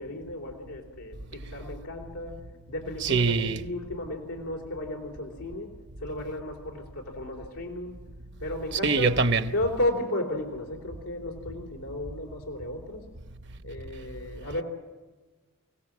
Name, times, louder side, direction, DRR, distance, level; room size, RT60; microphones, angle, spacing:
voice 1, 0.0-2.3 2.7-5.7 6.0-8.0 8.4-9.1 9.5-13.0 13.6-14.6, left 1 dB, 90° left, 3.7 m, -34 dB
voice 2, 3.0-3.6 8.8-9.5, right 4 dB, 50° right, 1.0 m, -23 dB
28.0 x 17.5 x 7.5 m
head